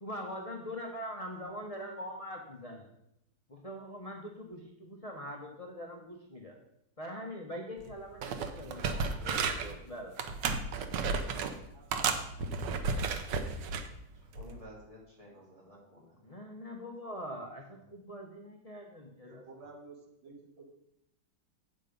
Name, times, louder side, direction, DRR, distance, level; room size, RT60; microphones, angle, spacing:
voice 1, 0.0-2.9 3.5-6.5 7.0-10.4 16.2-19.5, equal, 30° left, 0 dB, 0.7 m, -43 dB
sound 1, 7.8-7.9 8.2-9.7 10.2-11.5 11.9-13.9 14.4-14.6, right 5 dB, 70° right, 1.4 m, -33 dB
voice 2, 14.1-16.2, left 1 dB, 20° right, -5 dB, 2.9 m, -53 dB
voice 3, 15.3-16.0 19.2-20.7, right 3 dB, 90° right, 1 dB, 2.4 m, -53 dB
8.3 x 6.7 x 5.1 m, 0.83 s
omnidirectional pair, 2.1 m